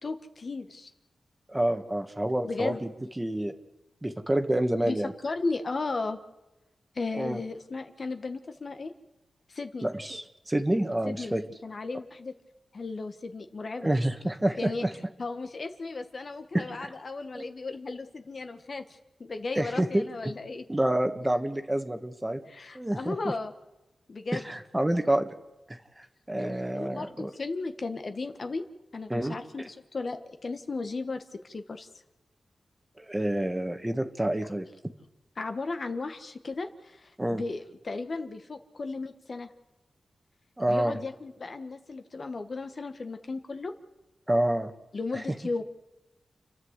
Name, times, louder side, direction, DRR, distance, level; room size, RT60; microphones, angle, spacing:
voice 1, 0.0-0.9 2.4-2.8 4.8-5.0 5.2-6.2 6.9-8.9 9.5-9.9 11.0-11.3 11.6-12.3 12.7-13.9 14.6-14.8 15.2-18.8 19.2-20.6 22.5-23.5 24.1-24.5 26.4-28.6 28.9-31.9 35.4-39.5 40.7-43.7 44.9-45.6, left 3 dB, 50° left, 7 dB, 1.4 m, -35 dB
voice 2, 1.5-2.9 3.2-3.5 4.0-5.1 7.2-7.4 9.8-11.4 13.8-14.9 16.5-16.9 17.3-17.4 19.5-20.3 20.7-22.4 22.7-23.3 24.3-25.3 25.7-27.3 29.1-29.7 33.0-34.7 37.2-37.4 40.6-41.0 44.3-44.7 45.1-45.2, right 1 dB, 15° right, 6 dB, 1.6 m, -28 dB
29.0 x 11.0 x 8.2 m, 1.0 s
cardioid pair, 75°, 0 cm